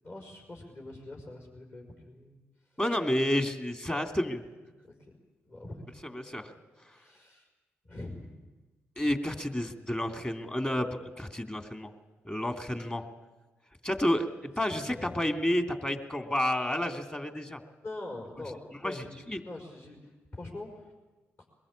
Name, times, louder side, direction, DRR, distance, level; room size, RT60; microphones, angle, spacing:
voice 1, 0.0-2.4 4.8-5.2 5.4-5.8 6.4-6.6 6.9-7.5 7.8-8.3 14.7-15.2 17.8-20.9, left 2 dB, 45° left, 1 dB, 5.2 m, -44 dB
voice 2, 2.8-4.4 6.1-6.5 9.0-11.9 12.2-13.0 13.8-14.3 14.6-17.6 18.8-19.4, left 1 dB, 20° left, 7 dB, 2.9 m, -30 dB
23.0 x 21.0 x 8.8 m, 1.2 s
hypercardioid pair, 40°, 6 cm